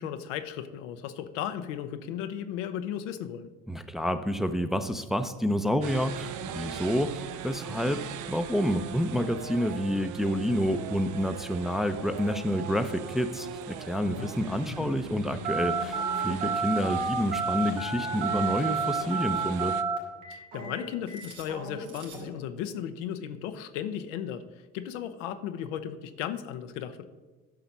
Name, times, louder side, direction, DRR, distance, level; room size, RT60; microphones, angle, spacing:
voice 1, 0.0-3.5 14.1-14.9 16.3-16.5 20.3-24.4 24.7-27.1, left 9 dB, 80° left, 10 dB, 0.7 m, -36 dB
voice 2, 3.7-19.7, equal, ahead, 8 dB, 0.6 m, -29 dB
sound 1, 5.8-19.8, right 8 dB, 55° right, 0.7 m, -40 dB
Telephone, 15.4-22.3, right 4 dB, 80° right, 2.5 m, -31 dB
10.5 x 5.8 x 5.4 m, 1.3 s
hypercardioid pair, 70°, 36 cm